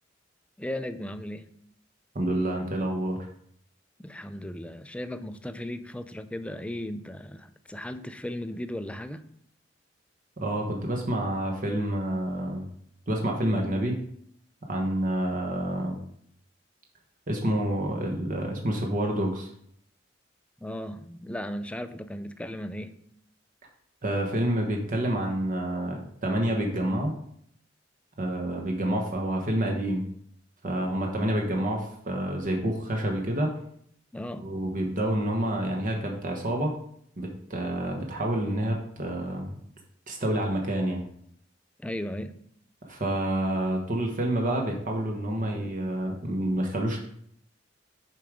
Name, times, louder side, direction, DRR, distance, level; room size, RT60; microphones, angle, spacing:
voice 1, 0.6-1.6 4.0-9.2 20.6-23.0 34.1-34.5 41.8-42.3, left 1 dB, 5° left, 10 dB, 0.4 m, -36 dB
voice 2, 2.1-3.2 10.4-12.7 13.1-13.9 14.7-16.0 17.3-19.5 24.0-27.1 28.2-30.0 30.6-33.5 34.4-36.7 37.2-39.5 40.1-41.0 42.9-47.1, right 1 dB, 45° right, 0 dB, 1.0 m, -28 dB
7.0 x 4.7 x 5.1 m, 0.68 s
head